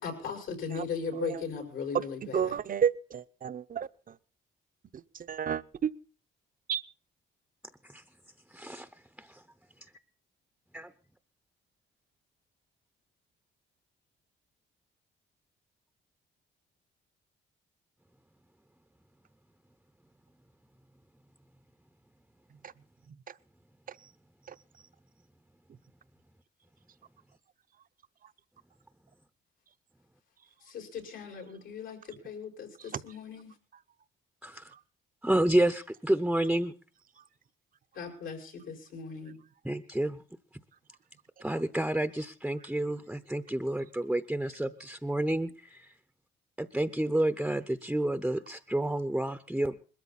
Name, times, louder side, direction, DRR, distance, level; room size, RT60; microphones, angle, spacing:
voice 1, 0.0-2.6 30.7-33.6 37.9-39.4, left 6 dB, 80° left, 3 dB, 5.5 m, -38 dB
voice 2, 2.3-3.9 5.3-5.9 6.7-6.8, right 8 dB, 45° right, 13 dB, 0.8 m, -30 dB
voice 3, 8.5-8.9 9.2-9.4 10.7-10.9 34.4-34.7 35.2-36.7 39.6-40.2 41.4-45.9 46.6-49.7, right 1 dB, 5° right, 10 dB, 0.8 m, -30 dB
21.0 x 13.5 x 4.2 m, 0.39 s
cardioid pair, 90°, 20 cm